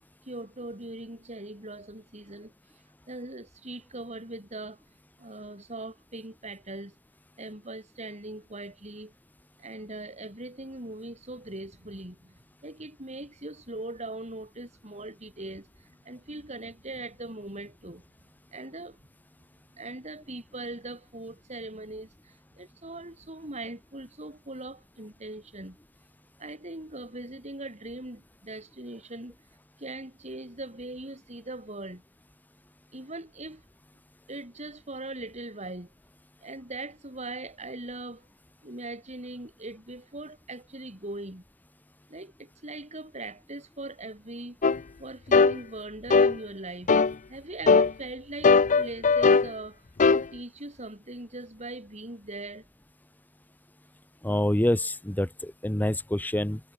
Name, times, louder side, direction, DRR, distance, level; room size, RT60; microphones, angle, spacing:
voice 1, 0.3-2.5 3.1-4.8 5.2-7.0 7.4-9.1 9.6-18.0 18.5-19.0 19.7-25.8 26.4-29.4 29.8-32.0 32.9-33.6 34.3-35.9 36.4-38.3 38.6-41.4 42.1-44.6 45.0-46.9 47.3-49.8 50.1-52.7, right 2 dB, 30° right, 5.3 m, -40 dB
sound 1, 44.6-44.8 45.3-45.6 46.1-46.4 46.9-47.1 47.7-47.9 48.4-49.5 50.0-50.3, left 4 dB, 35° left, 0.5 m, -19 dB
voice 2, 54.2-56.6, left 1 dB, 10° left, 0.8 m, -26 dB
head